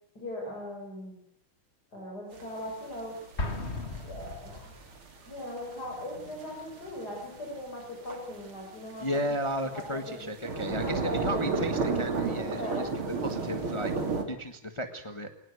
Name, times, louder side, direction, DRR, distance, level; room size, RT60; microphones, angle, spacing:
voice 1, 0.2-1.2 1.9-3.5 4.1-4.7 5.3-9.2 9.8-10.2 10.6-11.5 12.5-12.9, left 1 dB, 50° left, -2 dB, 7.0 m, -39 dB
sound 1, 2.3-14.2, right 4 dB, 85° right, 3.8 m, -33 dB
Explosion, 3.4-5.1, left 2 dB, 30° left, 2.3 m, -36 dB
voice 2, 9.0-12.6 13.2-13.9 14.3-15.3, equal, 15° left, 7 dB, 1.4 m, -34 dB
22.0 x 19.5 x 8.3 m, 0.70 s
omnidirectional pair, 2.2 m